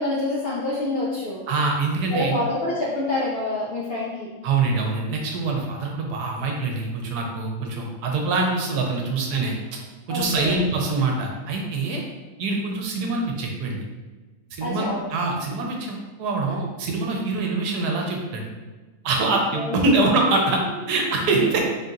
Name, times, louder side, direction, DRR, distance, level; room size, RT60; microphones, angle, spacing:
voice 1, 0.0-1.4 2.1-4.3 10.1-10.6 14.6-15.0 19.6-19.8, left 2 dB, 60° left, -6 dB, 0.6 m, -27 dB
voice 2, 1.5-2.4 4.4-9.8 10.1-12.0 12.4-13.8 14.5-18.5 19.0-21.6, right 3 dB, 75° right, 0 dB, 1.2 m, -24 dB
3.7 x 2.8 x 3.7 m, 1.3 s
omnidirectional pair, 1.8 m